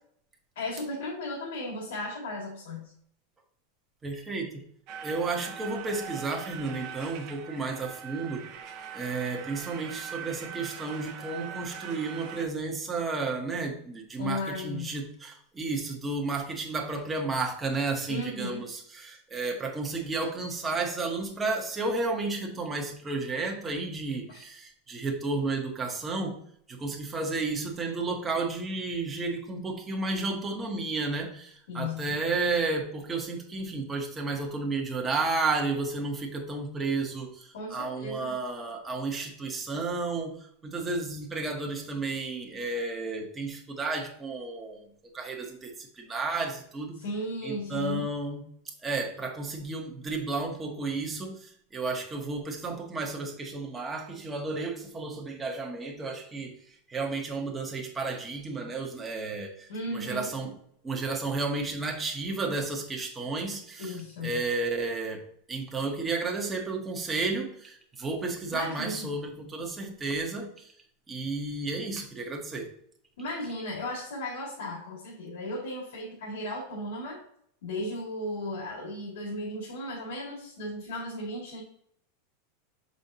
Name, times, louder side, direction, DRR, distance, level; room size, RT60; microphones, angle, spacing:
voice 1, 0.6-2.9 14.2-15.0 18.1-18.6 24.3-24.4 31.7-32.2 37.5-38.3 46.9-48.1 59.7-60.3 63.8-64.4 68.5-69.1 73.2-77.2 77.6-81.6, left 1 dB, 80° left, -4 dB, 2.1 m, -35 dB
voice 2, 4.0-4.6 5.0-8.4 8.9-26.3 26.7-40.4 40.6-44.8 45.1-47.0 47.4-48.4 48.8-56.5 56.9-59.5 59.8-60.5 60.8-65.2 65.5-70.7 71.1-72.7, right 3 dB, 10° right, 2 dB, 0.9 m, -32 dB
sound 1, 4.9-12.4, right 8 dB, 35° right, 0.6 m, -41 dB
6.9 x 5.2 x 2.7 m, 0.67 s
supercardioid pair, 180°, 0 cm